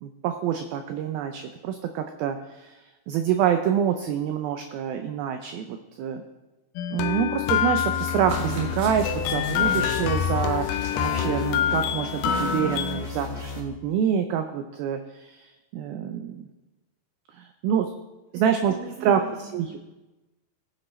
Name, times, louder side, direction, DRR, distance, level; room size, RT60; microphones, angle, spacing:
voice 1, 0.0-2.7 3.1-6.2 6.9-16.5 17.3-17.9 18.3-18.7 19.0-19.2 19.5-19.8, right 8 dB, 85° right, 6 dB, 2.1 m, -27 dB
sound 1, 6.8-13.0, left 9 dB, 85° left, 2.1 m, -26 dB
Domestic sounds home sounds, 7.4-11.4 12.3-12.5, right 1 dB, 45° right, 3.6 m, -44 dB
sound 2, 8.3-13.6, left 3 dB, 40° left, 2.4 m, -34 dB
voice 2, 18.7-19.8, right 6 dB, 60° right, -4 dB, 2.9 m, -42 dB
20.5 x 7.7 x 3.2 m, 1.1 s
omnidirectional pair, 5.0 m